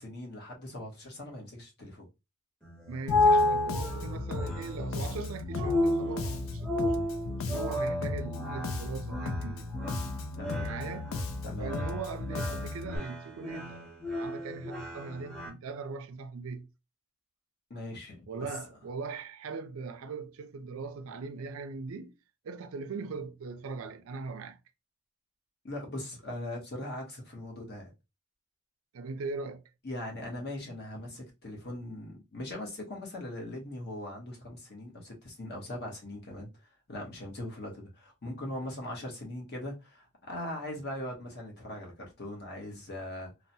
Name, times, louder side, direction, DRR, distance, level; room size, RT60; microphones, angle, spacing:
voice 1, 0.0-2.1 10.4-10.7 11.4-11.7 17.7-18.5 25.6-27.9 29.8-36.5 36.9-43.3, left 1 dB, 50° left, 1.0 m, -40 dB
sound 1, 2.6-15.5, left 2 dB, 5° left, 0.7 m, -32 dB
voice 2, 2.9-7.0 7.4-9.7 10.6-11.1 11.6-16.7 18.3-22.1 22.4-24.6 28.9-29.6, right 4 dB, 70° right, 0.4 m, -40 dB
Bass guitar, 3.1-13.0, left 3 dB, 65° left, 0.4 m, -36 dB
3.1 x 2.0 x 2.7 m
head